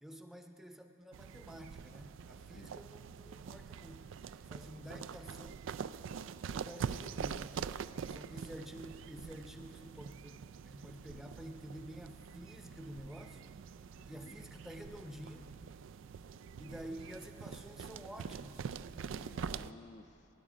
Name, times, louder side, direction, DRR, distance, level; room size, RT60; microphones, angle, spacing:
voice 1, 0.0-4.1 4.5-5.6 6.5-7.6 8.1-13.4 14.1-15.5 16.6-18.8, equal, ahead, 5 dB, 0.7 m, -50 dB
sound 1, 1.1-19.7, right 6 dB, 70° right, 0.3 m, -45 dB
voice 2, 13.9-14.4 19.2-20.3, left 3 dB, 35° left, 6 dB, 0.4 m, -56 dB
23.5 x 11.0 x 5.0 m, 2.9 s
head